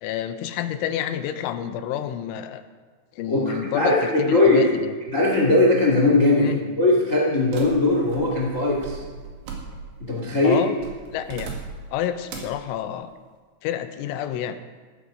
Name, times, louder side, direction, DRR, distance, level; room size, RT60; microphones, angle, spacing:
voice 1, 0.0-2.6 3.2-4.9 6.4-6.6 10.4-10.8 11.1-11.5 11.9-13.1 13.6-14.6, left 10 dB, 80° left, 9 dB, 3.2 m, -28 dB
voice 2, 3.3-4.6 5.1-9.0 10.0-10.6, left 2 dB, 35° left, -2 dB, 1.3 m, -19 dB
sound 1, 7.5-10.1 10.8-11.9 12.3-12.6, right 5 dB, 70° right, 4.1 m, -38 dB
15.0 x 13.0 x 5.2 m, 1.4 s
omnidirectional pair, 5.6 m